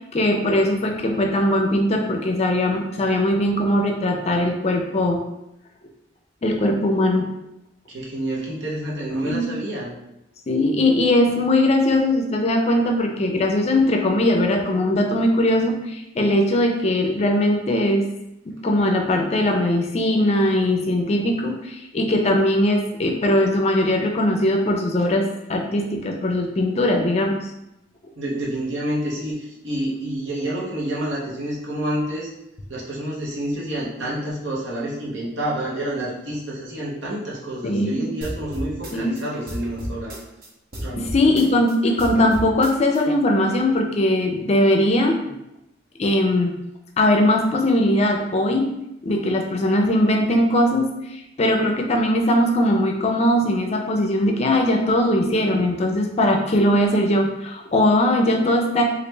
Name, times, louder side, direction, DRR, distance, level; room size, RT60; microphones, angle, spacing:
voice 1, 0.1-5.2 6.4-7.2 9.2-9.5 10.5-18.1 18.6-27.4 37.6-38.1 38.9-39.1 41.0-45.2 46.0-46.6 47.0-48.7 49.0-50.9 51.4-58.8, left 1 dB, 35° left, 2 dB, 0.4 m, -20 dB
voice 2, 7.9-10.0 28.2-32.3 32.7-40.2 40.7-41.1 45.2-45.3, right 1 dB, 85° right, -5 dB, 0.9 m, -28 dB
sound 1, 38.2-40.5 40.7-43.0, equal, 55° right, 0.7 m, -33 dB
3.1 x 2.5 x 3.2 m, 0.87 s
head